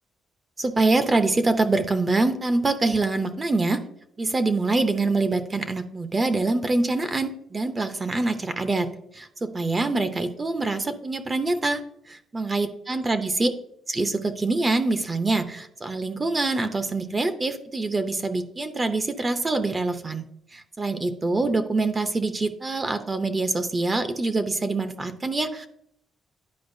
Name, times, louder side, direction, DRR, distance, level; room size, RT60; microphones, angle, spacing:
voice 1, 0.6-3.8 4.2-11.8 12.1-13.5 13.9-20.2 20.5-25.7, right 3 dB, 25° right, 9 dB, 0.6 m, -25 dB
10.5 x 4.7 x 2.6 m, 0.73 s
cardioid pair, 90°, 0 cm